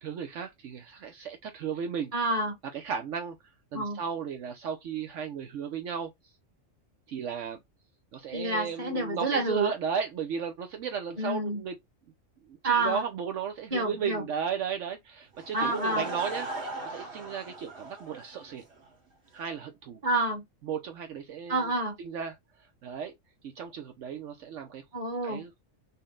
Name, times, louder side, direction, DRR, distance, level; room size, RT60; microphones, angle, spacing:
voice 1, 0.0-2.1 2.7-3.4 3.7-6.1 7.1-7.6 8.1-11.8 12.5-18.6 19.3-20.0 20.7-21.7 22.0-22.4 22.8-23.1 23.4-24.8 25.2-25.6, right 7 dB, 70° right, 1.0 m, -35 dB
voice 2, 2.1-2.6 3.7-4.0 8.3-9.7 11.2-11.6 12.6-13.0 13.7-14.2 15.5-16.0 20.0-20.4 21.5-21.9 24.9-25.4, right 2 dB, 30° right, 1.3 m, -28 dB
Laughter / Crowd, 15.3-18.9, right 2 dB, 55° right, 1.8 m, -39 dB
4.1 x 2.1 x 3.7 m
omnidirectional pair, 1.4 m